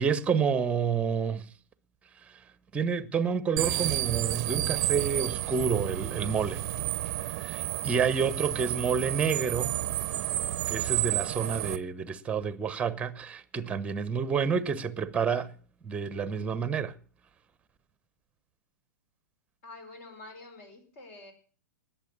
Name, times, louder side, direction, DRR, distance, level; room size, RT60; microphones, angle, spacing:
voice 1, 0.0-1.5 2.3-2.4 2.7-6.6 7.3-9.8 10.7-15.5 15.8-16.9, right 6 dB, 10° right, 0.9 m, -29 dB
sound 1, 3.6-11.8, right 14 dB, 35° right, 0.7 m, -31 dB
voice 2, 19.6-21.3, left 2 dB, 45° left, 4.8 m, -47 dB
20.0 x 7.3 x 7.2 m
figure-of-eight pair, 110°, 10 cm